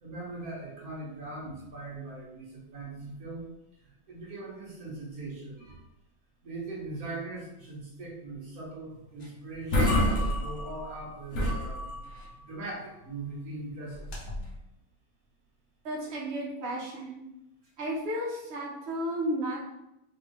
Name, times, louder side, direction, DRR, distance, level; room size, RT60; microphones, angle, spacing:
voice 1, 0.0-3.5 4.1-5.8 6.4-11.9 12.4-14.1, right 2 dB, 50° right, -4 dB, 1.3 m, -40 dB
sound 1, 9.2-9.3 9.5-11.0 11.3-12.3 14.0-14.5, left 1 dB, 60° left, 0.7 m, -28 dB
voice 2, 15.8-17.2 17.8-19.6, right 1 dB, 85° right, -4 dB, 0.5 m, -33 dB
3.5 x 3.3 x 3.0 m, 0.89 s
omnidirectional pair, 2.4 m